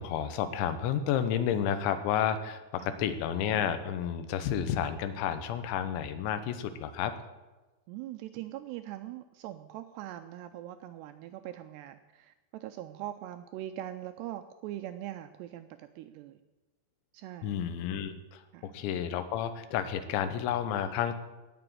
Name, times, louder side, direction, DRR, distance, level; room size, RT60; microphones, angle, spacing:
voice 1, 0.0-7.1 17.4-21.2, left 9 dB, 80° left, 10 dB, 3.1 m, -31 dB
voice 2, 7.9-16.4 17.1-17.6 18.5-18.7, right 13 dB, 85° right, 9 dB, 2.4 m, -42 dB
18.0 x 6.1 x 7.8 m, 1.2 s
omnidirectional pair, 5.4 m